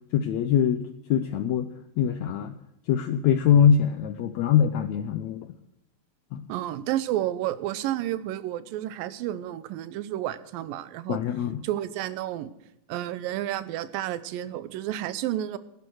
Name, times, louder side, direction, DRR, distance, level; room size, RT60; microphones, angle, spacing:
voice 1, 0.1-1.7 2.0-2.5 2.9-5.5 6.3-6.4 11.1-11.6, left 8 dB, 80° left, 10 dB, 1.6 m, -23 dB
voice 2, 6.5-11.2 11.6-12.5 12.9-15.6, right 13 dB, 85° right, 15 dB, 2.5 m, -31 dB
15.5 x 11.5 x 6.3 m, 0.84 s
omnidirectional pair, 4.0 m